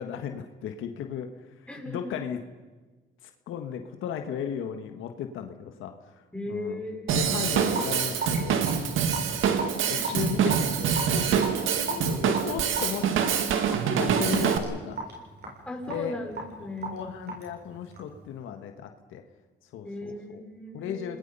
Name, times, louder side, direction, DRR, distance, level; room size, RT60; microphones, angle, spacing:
voice 1, 0.0-2.4 3.2-6.8 7.1-8.6 9.4-13.1 14.0-15.0 15.9-16.2 16.6-19.2 19.7-20.4 20.7-21.2, left 8 dB, 85° left, 6 dB, 1.6 m, -36 dB
voice 2, 1.7-2.1 6.3-7.6 9.8-10.0 15.7-17.0 19.8-21.2, left 1 dB, 5° left, 0 dB, 5.7 m, -37 dB
Drum kit / Drum, 7.1-14.6, right 7 dB, 85° right, 2.1 m, -25 dB
Raindrop / Drip, 7.7-18.2, right 2 dB, 55° right, 7.3 m, -37 dB
27.5 x 20.0 x 5.6 m, 1.3 s
cardioid pair, 90°, 20 cm